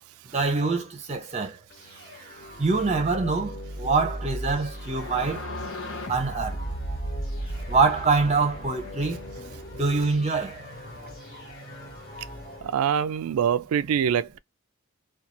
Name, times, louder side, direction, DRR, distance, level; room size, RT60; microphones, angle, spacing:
voice 1, 0.3-1.6 2.6-5.5 6.1-6.6 7.7-9.2 9.7-10.6, right 4 dB, 30° right, 0.7 m, -24 dB
sound 1, 1.7-12.7, equal, 40° left, 1.2 m, -39 dB
sound 2, 4.7-9.6, equal, 65° left, 0.8 m, -36 dB
voice 2, 12.6-14.4, right 8 dB, 80° right, 0.3 m, -24 dB
2.5 x 2.3 x 2.9 m
head